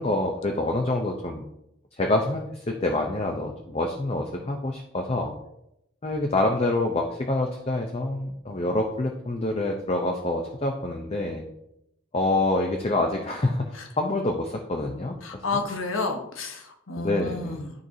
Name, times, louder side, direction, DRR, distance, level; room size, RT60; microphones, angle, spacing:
voice 1, 0.0-1.4 2.0-5.3 6.0-11.4 12.1-15.2 15.5-15.6 17.0-17.6, left 2 dB, 30° left, 2 dB, 0.6 m, -26 dB
voice 2, 15.2-17.7, left 3 dB, 85° left, 4 dB, 1.1 m, -31 dB
12.0 x 4.6 x 2.7 m, 0.81 s
head